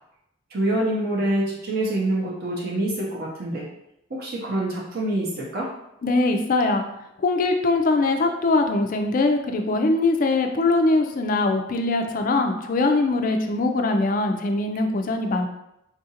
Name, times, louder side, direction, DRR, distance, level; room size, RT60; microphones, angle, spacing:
voice 1, 0.5-3.6 4.1-5.7, right 1 dB, 50° right, -4 dB, 0.6 m, -26 dB
voice 2, 6.0-6.8 7.2-15.5, left 2 dB, 40° left, 5 dB, 0.3 m, -22 dB
3.6 x 2.4 x 2.8 m, 0.83 s
head